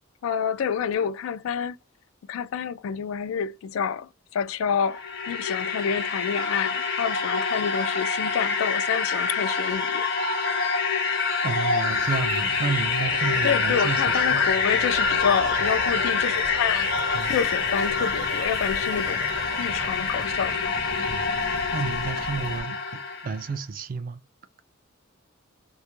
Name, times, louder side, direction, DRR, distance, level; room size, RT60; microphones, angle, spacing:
voice 1, 0.2-1.8 2.3-10.1 13.4-16.9 17.3-19.3 19.6-20.8, left 7 dB, 80° left, 0.3 m, -28 dB
sound 1, 4.7-23.4, left 5 dB, 50° left, 0.8 m, -26 dB
voice 2, 11.4-14.5 17.1-17.4 21.1-21.3 21.7-24.2, right 4 dB, 40° right, 0.3 m, -31 dB
sound 2, 11.9-22.6, left 1 dB, 20° left, 0.5 m, -41 dB
sound 3, 12.0-20.3, right 3 dB, 80° right, 0.7 m, -41 dB
2.2 x 2.1 x 2.9 m
head